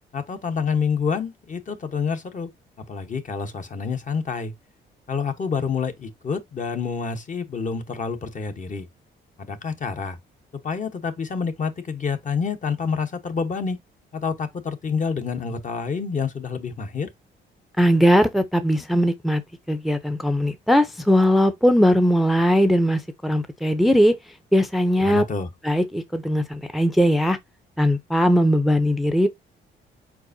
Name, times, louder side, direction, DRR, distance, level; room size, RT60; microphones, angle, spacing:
voice 1, 0.1-2.5 2.9-4.5 5.1-8.9 9.4-10.2 10.6-13.8 14.1-17.1 25.0-25.5, left 5 dB, 40° left, 1.0 m, -28 dB
voice 2, 17.8-19.4 19.7-24.2 24.5-25.2 25.6-27.4 27.8-29.3, equal, ahead, 0.6 m, -19 dB
4.7 x 4.3 x 2.6 m
cardioid pair, 90°, 20 cm